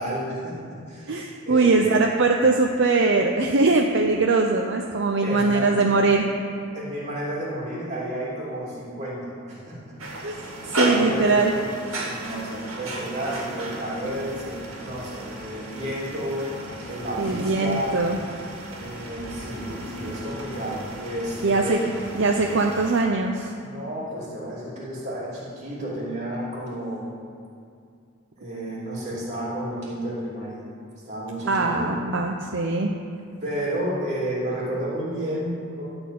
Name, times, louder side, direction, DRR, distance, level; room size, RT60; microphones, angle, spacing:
voice 1, 0.0-1.2 1.4-1.9 5.2-5.8 6.7-10.0 10.8-16.5 16.9-18.0 18.8-21.9 23.6-27.1 28.4-30.6 31.0-31.9 33.4-35.8, right 1 dB, 35° right, -6 dB, 3.1 m, -31 dB
voice 2, 1.1-6.2 10.2-10.3 10.7-11.5 17.2-18.2 21.4-21.8 22.1-23.5 31.4-32.9, right 3 dB, 60° right, 2 dB, 0.6 m, -21 dB
sound 1, 10.0-23.0, right 1 dB, 90° right, 1.9 m, -33 dB
13.0 x 4.4 x 8.5 m, 2.4 s
head